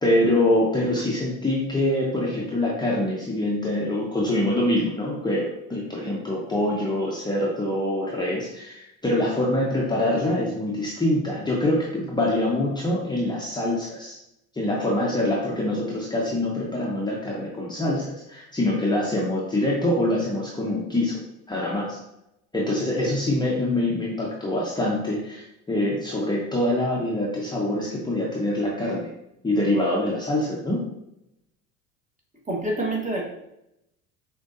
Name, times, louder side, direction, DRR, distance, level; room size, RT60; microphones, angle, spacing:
voice 1, 0.0-14.2 14.5-21.2 21.5-22.0 22.5-29.1 29.4-30.8, left 1 dB, 10° left, -5 dB, 0.8 m, -25 dB
voice 2, 32.5-33.3, right 2 dB, 20° right, -2 dB, 1.4 m, -26 dB
6.1 x 2.6 x 2.7 m, 0.83 s
hypercardioid pair, 80°, 40 cm